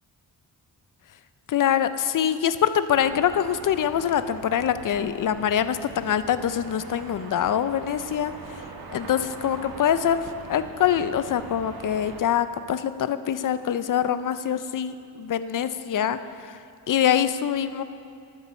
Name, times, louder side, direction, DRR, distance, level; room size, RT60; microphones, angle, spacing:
voice 1, 1.5-8.3 8.9-16.6 16.9-17.8, left 9 dB, 55° left, 12 dB, 0.5 m, -24 dB
sound 1, 2.9-12.2, right 4 dB, 65° right, 1.4 m, -42 dB
10.0 x 9.3 x 6.8 m, 2.5 s
wide cardioid pair, 130°, 39 cm